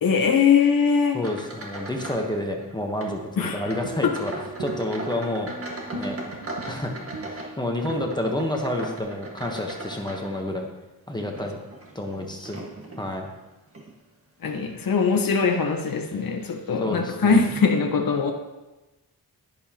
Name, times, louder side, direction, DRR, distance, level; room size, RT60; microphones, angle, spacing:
voice 1, 0.0-1.2 3.4-3.7 4.0-4.1 14.4-18.3, left 5 dB, 60° left, 3 dB, 1.1 m, -21 dB
voice 2, 1.1-5.5 5.9-6.2 6.7-6.9 7.3-10.7 11.1-11.6 11.9-12.6 13.0-13.3 16.8-17.5, left 1 dB, 10° left, 2 dB, 1.0 m, -29 dB
sound 1, 1.2-2.3 2.6-3.2 3.6-10.7 11.2-13.1 13.7-13.9 14.5-14.6 15.5-15.6 15.9-16.0, right 2 dB, 35° right, 1.6 m, -38 dB
sound 2, 3.5-9.0, right 3 dB, 80° right, 1.4 m, -38 dB
11.0 x 11.0 x 2.9 m, 1.1 s
wide cardioid pair, 155°, 38 cm